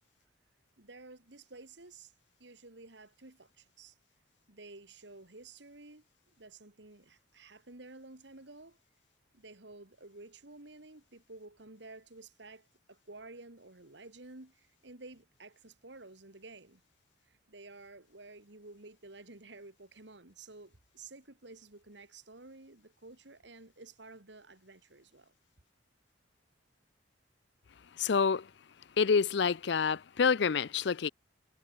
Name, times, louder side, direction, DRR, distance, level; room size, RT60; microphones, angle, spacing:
voice 1, 0.8-2.1 2.4-4.0 4.5-8.8 9.3-16.8 17.2-25.3, right 2 dB, 65° right, 2.2 m, -52 dB
voice 2, 28.0-28.5 29.0-31.1, left 5 dB, 65° left, 0.5 m, -27 dB
head